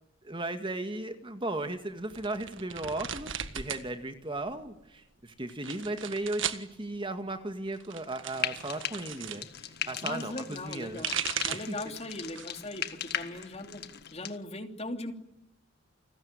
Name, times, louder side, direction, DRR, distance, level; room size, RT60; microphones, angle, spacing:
voice 1, 0.2-11.1 11.5-11.8 13.3-13.5, right 2 dB, 25° right, 7 dB, 1.9 m, -36 dB
sound 1, 2.1-3.9 4.2-4.8 5.5-6.7 7.7-9.4 10.7-11.8 12.2-12.7 13.1-14.0, right 9 dB, 70° right, 1.7 m, -37 dB
Frying (food), 8.3-14.4, left 9 dB, 55° left, 1.7 m, -38 dB
voice 2, 10.0-11.2 11.4-13.8 14.1-15.1, left 2 dB, 30° left, 6 dB, 2.9 m, -39 dB
29.5 x 20.0 x 9.8 m, 0.87 s
head